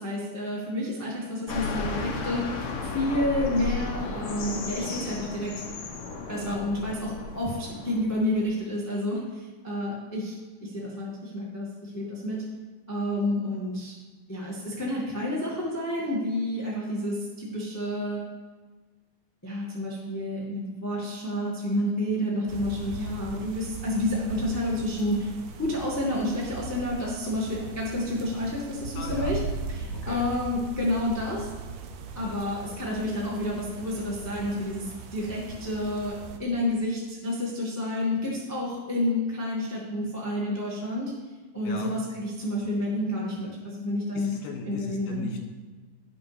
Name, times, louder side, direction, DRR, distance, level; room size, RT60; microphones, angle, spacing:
voice 1, 0.0-5.5 6.3-12.4 12.9-13.9 14.3-18.2 19.4-25.3 25.6-29.4 29.7-31.5 32.1-36.1 36.4-41.1 41.5-44.3 44.7-45.3, left 1 dB, 10° left, -4 dB, 0.9 m, -30 dB
sound 1, 1.5-8.5, left 4 dB, 60° left, 1.7 m, -34 dB
voice 2, 3.1-3.5 6.5-6.6 28.9-29.4 29.9-30.3 41.6-41.9 44.1-45.4, left 4 dB, 75° left, 1 dB, 3.4 m, -38 dB
sound 2, 22.5-36.4, right 4 dB, 85° right, 1.5 m, -39 dB
17.0 x 5.8 x 3.4 m, 1.3 s
omnidirectional pair, 3.8 m